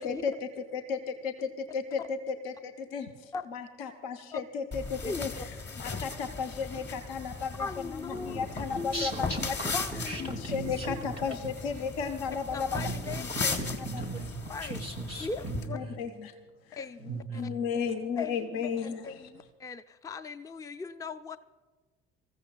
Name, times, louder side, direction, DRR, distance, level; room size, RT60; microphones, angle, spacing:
voice 1, 0.7-13.6 13.9-14.0 15.7-16.3 16.7-16.8 17.3-19.2, left 6 dB, 65° left, 7 dB, 0.9 m, -35 dB
sound 1, 4.7-15.7, left 4 dB, 30° left, 1.5 m, -38 dB
voice 2, 5.0-5.5 7.6-9.1 9.7-10.5 10.9-11.0 12.5-13.2 13.5-13.6 14.5-14.8 15.2-15.8 16.7-17.4 18.2-21.4, left 4 dB, 10° left, 11 dB, 0.5 m, -39 dB
voice 3, 8.1-11.1 11.4-11.5 12.7-16.0 17.0-17.6, right 2 dB, 90° left, 0 dB, 1.8 m, -38 dB
26.0 x 15.0 x 2.3 m, 1.3 s
figure-of-eight pair, 55°, 33 cm